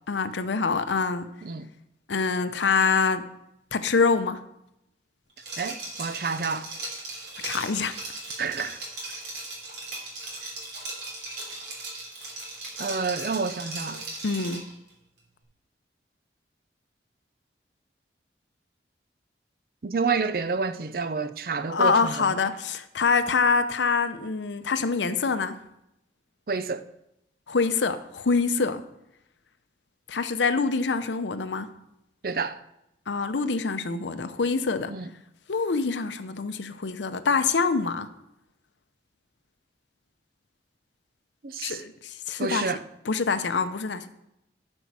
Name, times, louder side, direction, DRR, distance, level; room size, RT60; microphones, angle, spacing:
voice 1, 0.1-1.3 2.1-3.3 3.7-4.4 7.4-7.9 14.2-14.6 21.7-25.6 27.5-28.8 30.1-31.7 33.1-34.9 35.5-38.1 41.6-42.7 43.1-44.1, left 4 dB, 90° left, 0.6 m, -25 dB
Liquid, 5.4-14.7, right 2 dB, 75° right, 3.0 m, -37 dB
voice 2, 5.6-6.7 8.4-8.8 12.8-14.0 19.8-22.3 26.5-26.8 32.2-32.6 34.9-35.1 41.4-41.8 42.4-42.8, right 4 dB, 55° right, 0.5 m, -29 dB
12.0 x 5.4 x 4.7 m
head